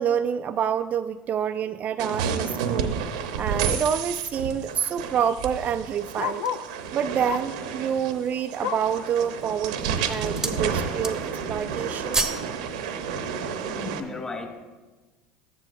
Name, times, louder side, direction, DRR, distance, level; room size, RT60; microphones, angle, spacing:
voice 1, 0.0-3.0 3.4-6.5 6.9-12.3, right 8 dB, 40° right, 9 dB, 0.3 m, -27 dB
sound 1, 2.0-14.0, right 6 dB, 75° right, 0.8 m, -31 dB
Bark, 4.7-6.8 7.2-7.6 8.0-9.0 9.5-9.6 10.0-10.1 10.7-10.8, left 8 dB, 70° left, 0.4 m, -34 dB
sound 2, 6.0-6.8 7.4-7.5 7.9-8.5 9.2-9.5 9.9-10.6 10.9-11.4 11.7-12.5 12.8-13.0, right 3 dB, 15° right, 1.0 m, -31 dB
voice 2, 13.7-14.6, left 3 dB, 20° left, 1 dB, 2.9 m, -35 dB
13.0 x 9.8 x 2.5 m, 1.2 s
hypercardioid pair, 75°, 4 cm